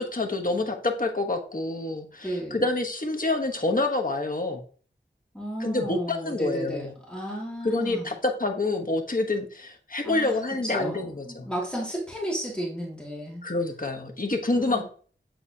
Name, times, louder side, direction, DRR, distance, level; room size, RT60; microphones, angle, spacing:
voice 1, 0.0-4.6 5.6-6.9 7.6-11.5 13.4-14.8, left 2 dB, 45° left, 2 dB, 1.2 m, -27 dB
voice 2, 2.2-2.6 5.3-8.1 10.0-10.4 10.7-13.4 14.5-14.8, right 1 dB, 5° left, -4 dB, 2.2 m, -33 dB
8.9 x 3.9 x 2.8 m, 0.43 s
wide cardioid pair, 50°, 20 cm